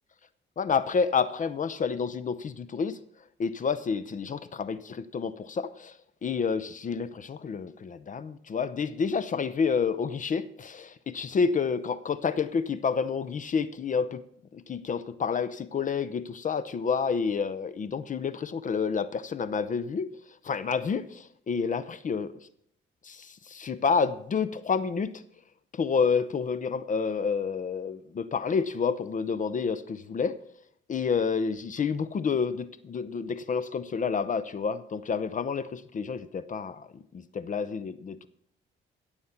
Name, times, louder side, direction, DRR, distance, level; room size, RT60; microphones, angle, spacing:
voice 1, 0.6-3.0 3.4-6.0 6.2-14.2 14.5-20.1 20.4-22.3 23.0-25.1 25.7-30.4 30.9-36.9 37.1-38.3, left 5 dB, 40° left, 16 dB, 0.7 m, -29 dB
16.5 x 7.2 x 5.7 m, 0.68 s
cardioid pair, 90°, 20 cm